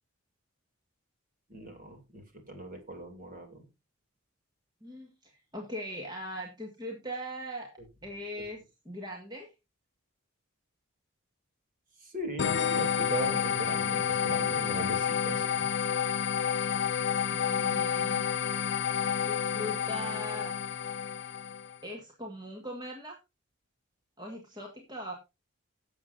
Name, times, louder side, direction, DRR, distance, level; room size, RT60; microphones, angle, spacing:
voice 1, 1.5-3.7 12.0-15.7, right 1 dB, 40° right, 4 dB, 3.1 m, -39 dB
voice 2, 4.8-7.7 8.0-9.5 17.3-18.3 19.2-20.5 21.8-23.2 24.2-25.1, equal, 20° right, 0 dB, 1.8 m, -40 dB
sound 1, 12.4-21.8, left 7 dB, 55° left, 0.4 m, -29 dB
17.0 x 7.3 x 2.7 m, 0.25 s
head